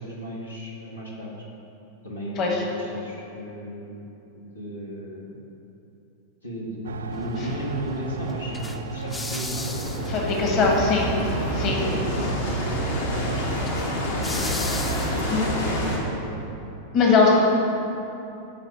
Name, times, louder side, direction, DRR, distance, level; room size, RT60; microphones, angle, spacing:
voice 1, 0.0-1.4 2.0-4.1 4.3-5.5 6.4-10.6 11.6-12.4 12.6-14.6 15.0-16.4, equal, 85° left, -5 dB, 1.5 m, -35 dB
voice 2, 2.3-2.7 7.4-7.5 10.1-11.1 11.5-11.8 15.3-15.4 16.9-17.4, left 4 dB, 35° left, -1 dB, 1.4 m, -20 dB
sound 1, 6.8-12.4, right 5 dB, 65° right, 0.3 m, -35 dB
sound 2, 7.1-15.5, left 2 dB, 10° left, 0.5 m, -38 dB
sound 3, 9.2-16.0, equal, 65° left, 1.6 m, -28 dB
9.9 x 3.9 x 6.9 m, 2.9 s
figure-of-eight pair, 90°, 0 cm